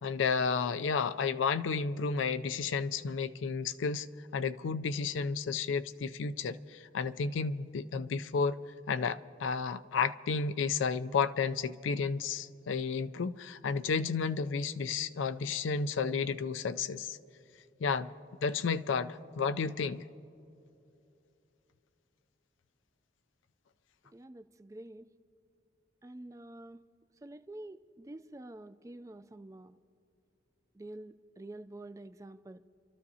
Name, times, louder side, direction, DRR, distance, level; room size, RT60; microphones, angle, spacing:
voice 1, 0.0-4.1 4.3-8.6 8.9-17.2 17.8-18.1 18.4-20.0, left 5 dB, 90° left, 12 dB, 0.4 m, -32 dB
voice 2, 24.1-25.1 26.0-26.8 27.2-29.8 30.7-32.6, right 1 dB, 15° right, 10 dB, 0.3 m, -48 dB
29.5 x 13.0 x 2.8 m, 2.8 s
head